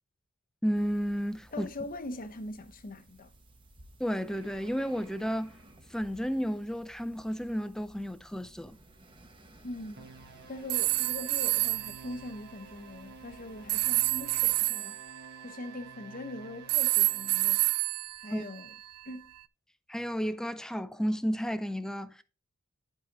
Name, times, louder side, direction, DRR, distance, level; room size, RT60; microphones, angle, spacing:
voice 1, 0.6-1.7 4.0-5.6 5.9-8.8 18.3-18.4 19.9-22.2, equal, 5° left, 0.3 m, -32 dB
sound 1, 0.7-14.6, right 1 dB, 20° right, 0.9 m, -57 dB
voice 2, 1.5-3.3 9.6-10.1 10.5-15.0 15.4-17.6 18.2-18.7 19.1-19.3, left 2 dB, 40° left, 0.7 m, -41 dB
sound 2, 10.0-17.5, right 3 dB, 45° right, 1.2 m, -52 dB
sound 3, 10.7-12.0 13.7-16.2 16.7-19.0, right 20 dB, 85° right, 0.3 m, -29 dB
11.0 x 4.8 x 2.9 m
head